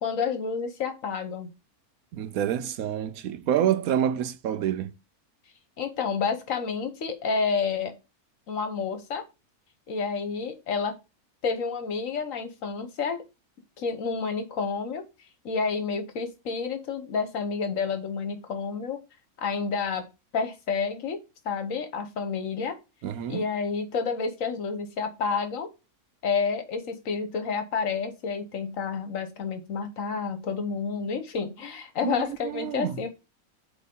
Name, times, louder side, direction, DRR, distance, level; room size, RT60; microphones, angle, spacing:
voice 1, 0.0-1.5 5.8-7.9 8.5-9.2 9.9-11.0 11.4-13.2 13.8-15.0 15.4-19.0 19.4-20.1 20.3-21.2 21.4-22.8 23.3-25.7 26.2-33.1, left 5 dB, 65° left, 1.3 m, -29 dB
voice 2, 2.1-4.9 23.0-23.4 32.0-32.2 32.4-33.0, right 10 dB, 75° right, 1.1 m, -27 dB
8.1 x 3.4 x 3.7 m
omnidirectional pair, 1.5 m